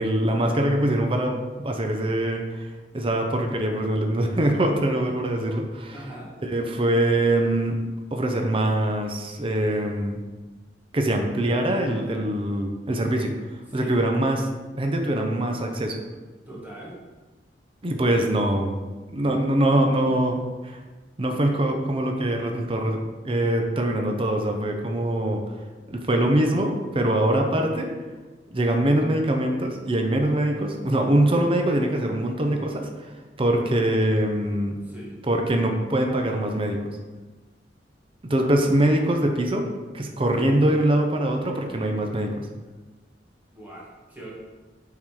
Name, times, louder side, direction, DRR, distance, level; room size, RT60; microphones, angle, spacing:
voice 1, 0.0-6.1 6.4-7.8 8.1-10.2 10.9-13.3 13.7-14.5 14.8-16.0 17.8-18.8 19.1-20.8 21.2-25.4 25.9-27.9 28.5-33.1 33.4-34.8 35.2-36.9 38.2-39.7 39.9-42.5, right 1 dB, 30° right, 3 dB, 0.7 m, -23 dB
voice 2, 5.9-6.3 13.7-13.9 16.5-16.9 32.1-32.6 34.9-35.1 43.5-44.3, right 1 dB, 10° right, -6 dB, 1.9 m, -41 dB
7.4 x 3.8 x 4.8 m, 1.3 s
head